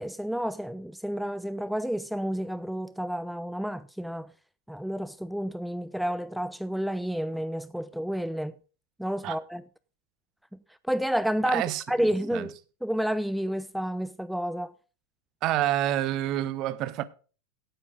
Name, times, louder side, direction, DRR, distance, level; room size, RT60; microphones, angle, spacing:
voice 1, 0.0-4.3 4.7-8.5 9.0-9.6 10.8-11.6 11.9-14.7, equal, ahead, 0.4 m, -30 dB
voice 2, 11.5-11.8 12.3-12.5 15.4-17.0, right 13 dB, 35° right, 0.9 m, -27 dB
17.0 x 9.8 x 2.4 m
figure-of-eight pair, 90°, 0 cm